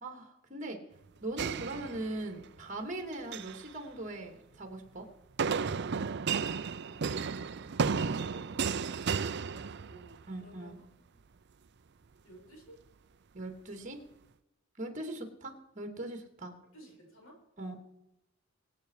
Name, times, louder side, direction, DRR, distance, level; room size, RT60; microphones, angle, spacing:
voice 1, 0.0-0.8 1.2-5.1 10.3-10.8 13.3-14.0 14.8-16.5 17.6-17.8, right 2 dB, 40° right, 5 dB, 2.6 m, -40 dB
sound 1, 1.4-2.5 3.1-3.6 5.4-10.2, right 5 dB, 55° right, 0.5 m, -33 dB
voice 2, 6.0-11.1 12.2-12.8 16.7-17.4, right 1 dB, 80° left, -1 dB, 6.4 m, -56 dB
24.5 x 8.5 x 4.8 m, 0.90 s
head